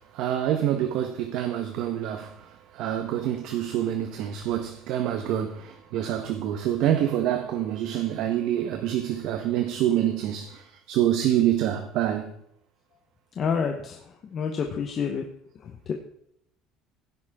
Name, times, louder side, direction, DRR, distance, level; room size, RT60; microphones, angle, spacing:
voice 1, 0.0-12.3, right 11 dB, 50° right, 1.3 m, -26 dB
voice 2, 13.4-15.2 15.6-15.9, left 6 dB, 25° left, 1.1 m, -29 dB
15.5 x 11.0 x 3.7 m
cardioid pair, 180°, 0 cm